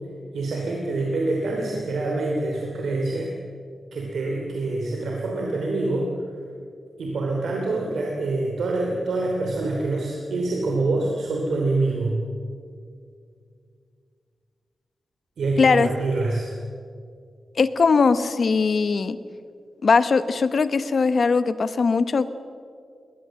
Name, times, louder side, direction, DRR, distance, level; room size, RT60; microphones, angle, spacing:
voice 1, 0.3-3.3 3.9-6.1 7.0-12.2 15.4-16.5, right 2 dB, 90° right, 0 dB, 3.1 m, -25 dB
voice 2, 15.6-15.9 17.6-19.2 19.8-22.3, left 4 dB, 55° left, 13 dB, 1.0 m, -20 dB
21.5 x 19.0 x 7.7 m, 2.3 s
wide cardioid pair, 120°, 0 cm